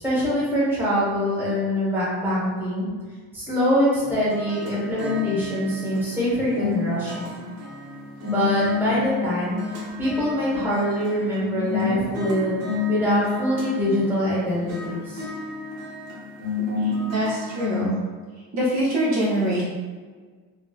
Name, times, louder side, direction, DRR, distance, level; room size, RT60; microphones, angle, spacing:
voice 1, 0.0-2.9 3.3-7.4 8.2-9.6 10.0-12.6 12.9-15.3, equal, 5° right, -9 dB, 1.0 m, -24 dB
sound 1, 4.0-17.8, left 4 dB, 75° right, 1.0 m, -31 dB
voice 2, 16.8-18.0 18.5-19.6, right 1 dB, 50° right, -7 dB, 0.7 m, -24 dB
4.1 x 2.1 x 2.3 m, 1.5 s
cardioid pair, 170°, 36 cm